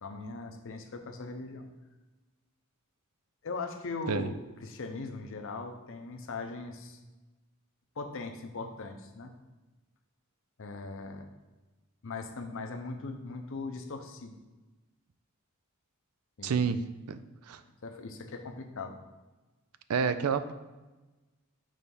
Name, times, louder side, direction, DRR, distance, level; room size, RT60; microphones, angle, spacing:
voice 1, 0.0-1.7 3.4-7.0 8.0-9.3 10.6-11.3 12.0-14.4 16.4-16.6 17.8-19.0, left 3 dB, 60° left, 5 dB, 0.7 m, -39 dB
voice 2, 16.4-17.2 17.5-17.6 19.9-20.5, right 6 dB, 80° right, 11 dB, 0.4 m, -29 dB
6.3 x 3.3 x 5.4 m, 1.1 s
head